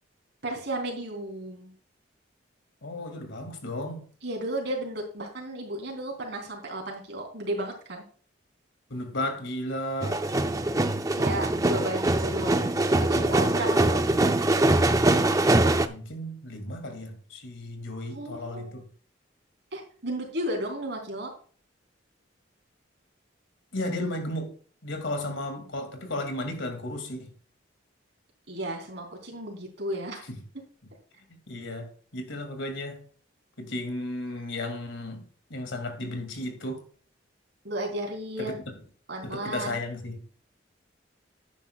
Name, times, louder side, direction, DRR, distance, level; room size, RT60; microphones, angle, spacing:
voice 1, 0.4-1.7 4.2-8.0 11.1-12.7 13.0-14.0 18.1-18.7 19.7-21.3 28.5-30.2 37.6-38.6 39.1-39.8, right 1 dB, 65° right, 3.5 m, -33 dB
voice 2, 2.8-4.0 8.9-10.2 15.9-18.9 23.7-24.5 24.8-27.3 30.3-30.4 31.3-33.0 33.6-35.2 35.5-36.8 38.4-38.5 39.2-40.2, left 1 dB, 85° left, 2.4 m, -34 dB
sound 1, 10.0-15.9, right 2 dB, 20° right, 0.5 m, -23 dB
11.0 x 9.8 x 2.4 m
head